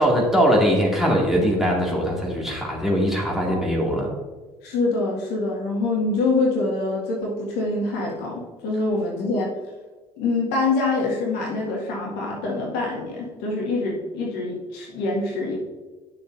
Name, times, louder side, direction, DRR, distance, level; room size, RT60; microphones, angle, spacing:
voice 1, 0.0-4.1, equal, ahead, -3 dB, 2.2 m, -21 dB
voice 2, 4.6-9.5 10.2-15.6, left 3 dB, 60° left, -2 dB, 1.8 m, -25 dB
10.5 x 6.6 x 2.6 m, 1.3 s
figure-of-eight pair, 55°, 19 cm